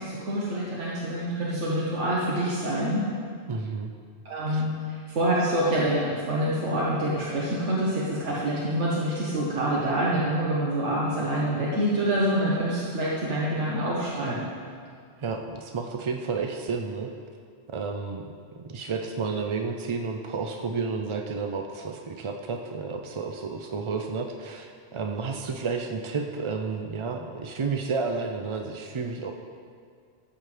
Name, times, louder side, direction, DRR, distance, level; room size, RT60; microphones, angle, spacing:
voice 1, 0.0-3.0 4.2-14.5, right 1 dB, 90° right, -6 dB, 1.5 m, -26 dB
voice 2, 3.5-3.9 4.5-4.6 15.2-17.1 17.7-18.3 18.6-29.3, right 4 dB, 50° right, 3 dB, 0.3 m, -31 dB
13.5 x 7.6 x 3.3 m, 2.2 s
omnidirectional pair, 1.2 m